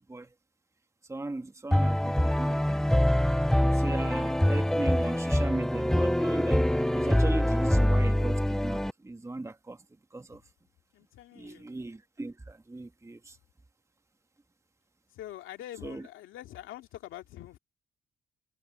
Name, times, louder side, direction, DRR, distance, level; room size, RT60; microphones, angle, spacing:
voice 1, 1.1-2.8 3.6-6.6 6.9-9.8 10.1-10.4 11.3-13.4 15.8-16.1, right 2 dB, 15° right, 1.6 m, -37 dB
sound 1, 1.7-8.9, left 1 dB, ahead, 0.5 m, -25 dB
voice 2, 10.9-11.7 15.1-17.6, left 13 dB, 90° left, 2.4 m, -44 dB
cardioid pair, 90°, 20 cm